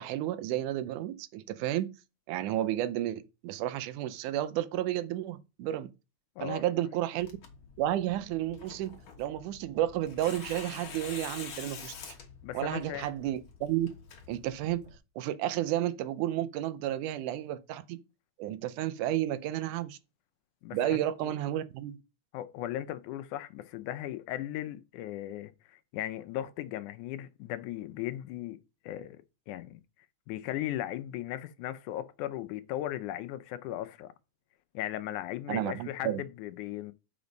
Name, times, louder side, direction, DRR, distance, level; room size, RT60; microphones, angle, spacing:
voice 1, 0.0-1.9 2.3-5.9 6.4-7.4 7.8-12.1 12.5-13.9 14.3-14.8 15.2-18.0 18.4-20.0 20.7-22.0 35.5-36.2, right 13 dB, 80° right, 2.1 m, -32 dB
Tearing, 7.2-15.0, left 6 dB, 50° left, 1.7 m, -47 dB
voice 2, 12.4-13.1 20.6-21.3 22.3-29.8 30.3-34.1 34.7-36.9, left 13 dB, 80° left, 2.0 m, -37 dB
7.0 x 5.2 x 5.2 m
omnidirectional pair, 3.6 m